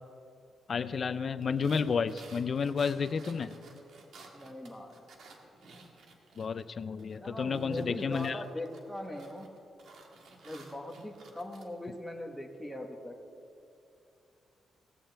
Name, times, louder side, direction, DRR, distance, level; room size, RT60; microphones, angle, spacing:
voice 1, 0.7-3.5 6.4-8.4, left 5 dB, 45° left, 13 dB, 0.4 m, -31 dB
sound 1, 1.4-6.7 7.0-11.7, right 3 dB, 70° right, 1.7 m, -54 dB
voice 2, 4.3-5.0 7.2-9.5 10.4-13.1, left 1 dB, 5° left, 1 dB, 1.3 m, -40 dB
17.5 x 16.0 x 3.4 m, 2.7 s
wide cardioid pair, 140°, 0 cm